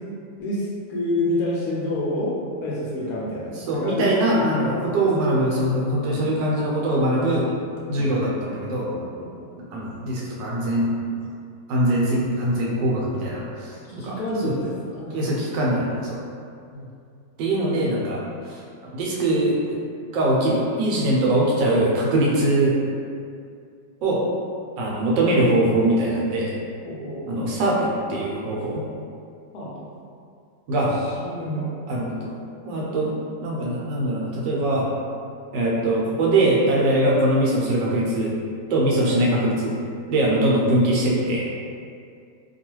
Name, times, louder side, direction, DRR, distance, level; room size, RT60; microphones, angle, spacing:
voice 1, 0.4-2.3 2.6-4.8 5.1-5.2 6.0-6.3 7.9-8.3 8.7-9.5 13.9-15.2 16.7-16.9 26.8-27.3 29.5-29.9 30.8-31.7, left 1 dB, 70° left, -5 dB, 1.0 m, -29 dB
voice 2, 3.4-7.5 7.9-9.0 9.7-10.9 11.2-11.3 11.7-13.8 14.0-14.2 14.4-14.6 15.1-16.2 17.4-18.2 18.5-19.8 20.1-22.8 24.0-24.2 24.8-26.5 27.3-28.8 30.7-30.9 31.9-32.3 32.6-33.1 33.4-34.9 35.5-38.3 38.7-39.8 40.1-41.5, right 1 dB, 85° right, -4 dB, 1.3 m, -22 dB
3.0 x 2.3 x 2.9 m, 2.3 s
omnidirectional pair, 1.9 m